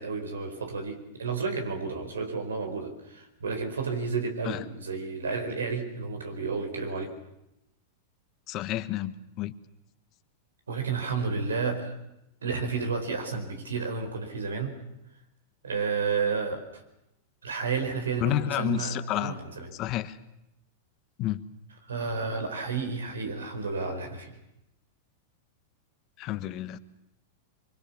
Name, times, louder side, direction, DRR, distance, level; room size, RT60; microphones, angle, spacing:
voice 1, 0.0-7.1 10.7-11.9 12.4-14.7 15.6-16.8 17.4-19.7 21.9-24.4, right 5 dB, 85° right, 5 dB, 4.7 m, -31 dB
voice 2, 8.5-9.5 18.2-19.4 19.8-20.1 21.2-21.4 26.2-26.8, left 15 dB, 45° left, 12 dB, 1.3 m, -30 dB
24.0 x 23.5 x 7.2 m, 0.86 s
hypercardioid pair, 105°, 0 cm